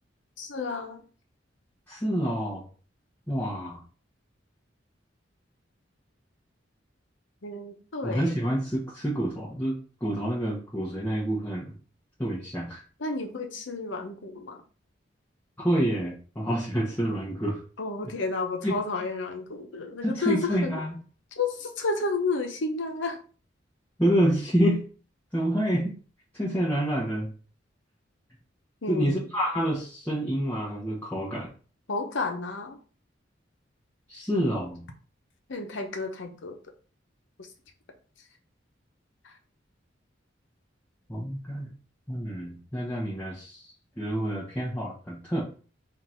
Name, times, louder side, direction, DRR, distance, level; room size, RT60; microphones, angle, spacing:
voice 1, 0.4-1.0 7.4-8.3 13.0-14.6 17.8-20.8 21.4-23.2 28.8-29.3 31.9-32.8 35.5-36.6 37.4-37.5 39.2-39.3, left 3 dB, 70° left, 4 dB, 0.8 m, -31 dB
voice 2, 1.9-2.7 3.3-3.8 8.0-11.7 12.2-12.8 15.6-17.6 18.6-18.7 20.0-20.9 24.0-24.8 25.3-25.9 26.3-27.3 28.9-31.5 34.1-34.9 41.1-41.7 42.1-43.7 44.0-45.4, equal, 10° left, -7 dB, 1.0 m, -28 dB
3.7 x 2.5 x 4.4 m, 0.39 s
head